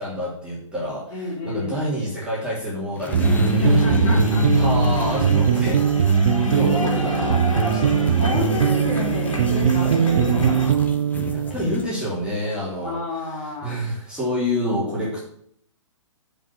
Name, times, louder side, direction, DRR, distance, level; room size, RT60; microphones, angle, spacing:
voice 1, 0.0-8.3 11.3-15.2, equal, 5° right, -7 dB, 2.9 m, -28 dB
voice 2, 1.1-1.8 3.6-4.7 8.2-10.9 12.8-13.8, left 2 dB, 30° left, -3 dB, 3.6 m, -30 dB
sound 1, 2.9-12.0, left 2 dB, 10° left, 0.8 m, -38 dB
sound 2, 3.1-11.6, right 8 dB, 65° right, 0.5 m, -21 dB
sound 3, 3.2-10.7, left 2 dB, 90° left, 2.3 m, -25 dB
7.2 x 5.1 x 7.1 m, 0.68 s
hypercardioid pair, 135°, 16 cm